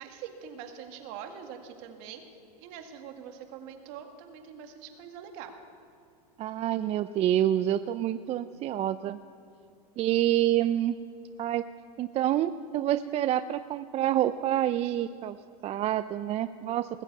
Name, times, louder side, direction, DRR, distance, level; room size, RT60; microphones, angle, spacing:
voice 1, 0.0-2.2 2.6-5.5 14.8-14.9, right 8 dB, 55° right, 5 dB, 2.0 m, -44 dB
voice 2, 6.4-9.2 10.0-10.9 11.4-11.6 12.0-15.4 15.6-16.9, right 12 dB, 30° right, 12 dB, 0.4 m, -27 dB
20.0 x 7.2 x 8.3 m, 2.5 s
hypercardioid pair, 110°, 20 cm